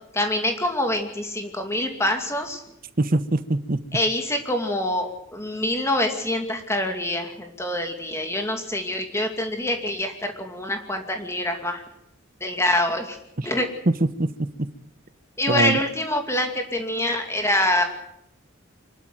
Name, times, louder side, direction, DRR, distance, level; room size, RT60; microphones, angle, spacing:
voice 1, 0.1-2.6 3.9-11.8 12.4-13.2 13.4-13.7 15.4-17.9, left 1 dB, 15° left, 5 dB, 2.5 m, -25 dB
voice 2, 3.0-3.8 13.4-13.5 13.9-14.7 15.5-15.8, right 2 dB, 45° right, 12 dB, 1.1 m, -23 dB
25.0 x 12.0 x 9.3 m, 0.81 s
head